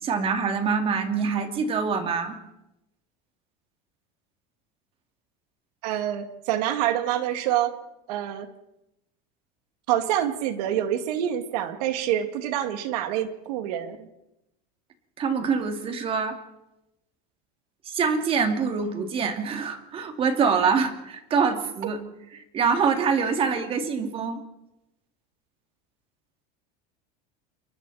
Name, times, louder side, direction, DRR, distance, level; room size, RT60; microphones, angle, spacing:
voice 1, 0.0-2.4 15.2-16.3 17.9-22.0 22.3-24.4, right 5 dB, 30° right, 6 dB, 2.8 m, -25 dB
voice 2, 5.8-7.7 8.1-8.5 9.9-14.1, right 11 dB, 80° right, 8 dB, 2.5 m, -26 dB
29.5 x 23.5 x 4.3 m, 0.91 s
supercardioid pair, 155°, 20 cm